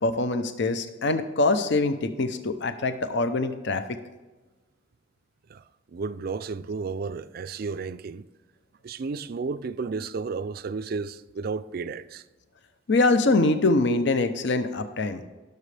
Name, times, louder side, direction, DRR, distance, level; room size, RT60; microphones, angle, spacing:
voice 1, 0.0-4.0 12.9-15.2, left 2 dB, 60° left, 0.7 m, -24 dB
voice 2, 5.9-8.3 8.8-12.2, right 4 dB, 50° right, 0.4 m, -32 dB
16.0 x 6.6 x 3.3 m
head